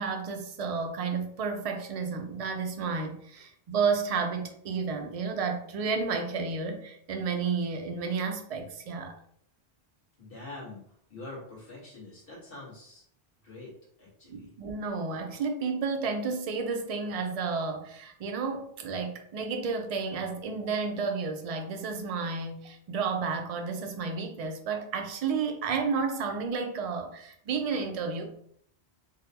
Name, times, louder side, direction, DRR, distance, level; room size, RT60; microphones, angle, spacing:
voice 1, 0.0-9.2 14.3-28.2, right 5 dB, 50° right, 4 dB, 0.4 m, -31 dB
voice 2, 10.2-10.8 11.1-13.0 13.4-13.7 14.0-14.5, left 2 dB, 60° left, -6 dB, 1.6 m, -44 dB
3.9 x 2.1 x 2.7 m, 0.66 s
omnidirectional pair, 1.0 m